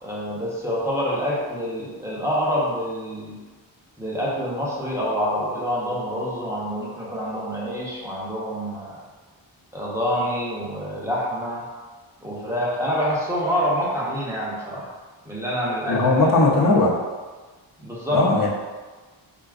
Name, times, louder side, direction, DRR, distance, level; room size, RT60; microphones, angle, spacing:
voice 1, 0.0-3.3 4.0-9.0 9.7-11.7 12.2-14.9 15.2-16.9 17.8-18.3, equal, 5° right, -6 dB, 0.8 m, -26 dB
voice 2, 15.9-16.9 18.1-18.5, left 3 dB, 45° left, -2 dB, 0.7 m, -18 dB
4.7 x 2.2 x 2.4 m, 1.3 s
wide cardioid pair, 105°, 47 cm